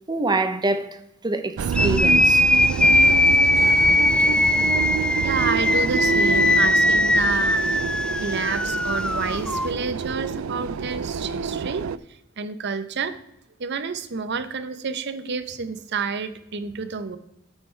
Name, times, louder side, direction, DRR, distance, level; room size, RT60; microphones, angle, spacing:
voice 1, 0.1-2.4, right 2 dB, 20° right, 0.7 m, -25 dB
sound 1, 1.6-12.0, right 6 dB, 80° right, 0.4 m, -27 dB
sound 2, 1.7-9.7, left 1 dB, 5° left, 0.3 m, -20 dB
voice 2, 5.2-7.6 8.2-11.8 12.4-13.1 13.6-17.2, right 5 dB, 55° right, 0.7 m, -29 dB
9.1 x 9.0 x 3.3 m
head